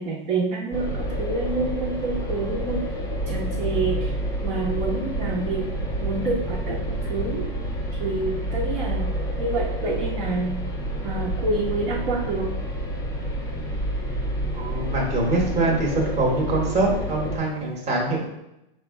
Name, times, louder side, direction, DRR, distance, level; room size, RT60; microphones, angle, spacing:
voice 1, 0.0-2.8 3.3-4.1 4.4-5.7 6.0-7.5 8.0-9.1 9.4-10.5 11.0-12.5, right 3 dB, 45° right, -5 dB, 1.0 m, -27 dB
sound 1, 0.7-17.4, right 1 dB, 10° left, 0.7 m, -29 dB
voice 2, 14.5-18.3, right 2 dB, 20° right, -2 dB, 1.2 m, -24 dB
4.7 x 2.2 x 4.5 m, 0.88 s
hypercardioid pair, 130°, 29 cm